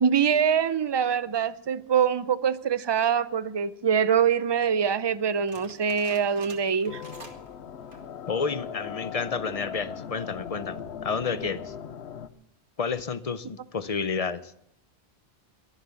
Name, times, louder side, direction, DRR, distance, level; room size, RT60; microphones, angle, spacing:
voice 1, 0.0-7.0, right 7 dB, 30° right, 0.5 m, -24 dB
sound 1, 5.5-7.5 7.8-8.2 8.7-8.8 9.4-9.8, right 2 dB, 50° right, 2.3 m, -47 dB
sound 2, 6.9-12.3, left 7 dB, 90° left, 1.0 m, -39 dB
voice 2, 8.3-11.7 12.8-14.5, left 5 dB, 40° left, 0.7 m, -30 dB
22.5 x 8.1 x 6.9 m
omnidirectional pair, 1.1 m